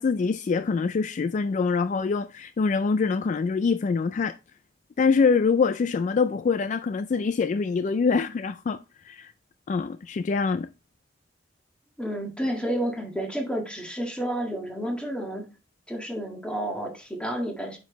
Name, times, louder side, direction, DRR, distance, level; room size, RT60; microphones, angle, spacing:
voice 1, 0.0-4.4 5.0-9.3 9.7-10.7, left 5 dB, 45° left, 0.3 m, -24 dB
voice 2, 12.0-15.5 15.9-17.8, right 1 dB, 5° left, 1.7 m, -30 dB
8.6 x 5.2 x 3.1 m
head